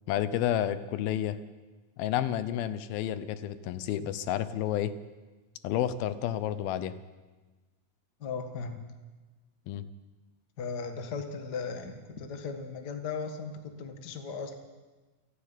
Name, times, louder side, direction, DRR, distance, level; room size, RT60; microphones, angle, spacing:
voice 1, 0.1-1.4 2.0-4.9 5.6-6.9 9.7-9.8, left 11 dB, 90° left, 13 dB, 2.8 m, -30 dB
voice 2, 8.2-8.8 10.6-14.5, left 5 dB, 40° left, 5 dB, 1.6 m, -37 dB
28.5 x 9.9 x 9.7 m, 1.3 s
omnidirectional pair, 4.2 m